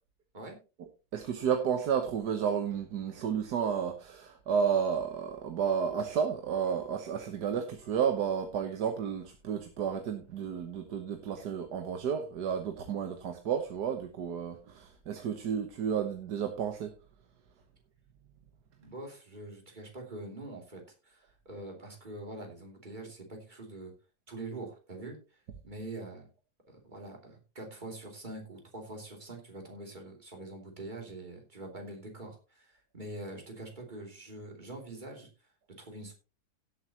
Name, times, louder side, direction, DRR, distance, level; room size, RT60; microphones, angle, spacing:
voice 1, 1.1-16.9, right 7 dB, 85° right, 6 dB, 1.7 m, -32 dB
voice 2, 18.8-23.9 24.3-26.3 26.7-35.3 35.8-36.1, right 2 dB, 30° right, 1 dB, 3.1 m, -44 dB
17.0 x 8.0 x 2.9 m, 0.31 s
omnidirectional pair, 1.7 m